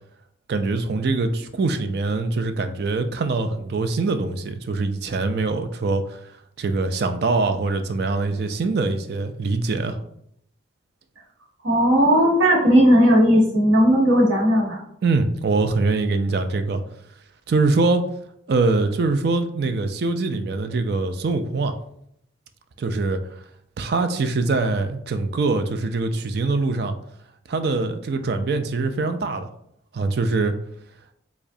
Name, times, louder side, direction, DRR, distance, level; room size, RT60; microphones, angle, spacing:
voice 1, 0.5-6.2 6.6-10.0 15.0-16.8 17.5-18.0 18.5-21.8 22.8-23.2 23.8-26.9 27.5-29.5 29.9-30.5, right 3 dB, 55° right, 8 dB, 0.3 m, -23 dB
voice 2, 11.6-14.8, equal, 85° right, -2 dB, 1.2 m, -16 dB
4.7 x 2.1 x 2.6 m, 0.72 s
head